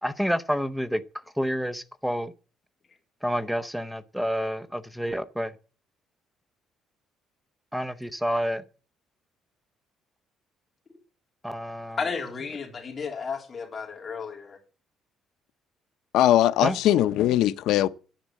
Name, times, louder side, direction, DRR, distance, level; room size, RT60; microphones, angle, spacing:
voice 1, 0.0-1.0 1.4-2.3 3.2-5.5 7.7-8.6 11.4-12.0 16.6-16.8, equal, ahead, 0.7 m, -28 dB
voice 2, 12.0-14.6, left 5 dB, 25° left, 3.3 m, -33 dB
voice 3, 16.1-17.9, left 13 dB, 75° left, 0.7 m, -20 dB
10.5 x 9.3 x 7.6 m
cardioid pair, 165°, 0 cm